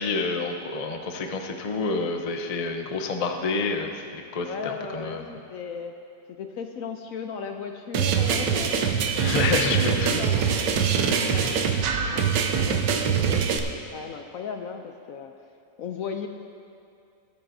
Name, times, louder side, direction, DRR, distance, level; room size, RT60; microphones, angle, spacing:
voice 1, 0.0-5.3 9.1-10.2 10.9-11.6, left 4 dB, 50° left, 4 dB, 0.4 m, -29 dB
voice 2, 4.4-5.9 6.4-8.9 9.3-11.6 12.0-15.3 15.8-16.3, left 6 dB, 70° left, 5 dB, 0.8 m, -36 dB
sound 1, 7.9-13.6, right 7 dB, 90° right, 1.4 m, -23 dB
23.0 x 8.8 x 2.7 m, 2.5 s
omnidirectional pair, 1.9 m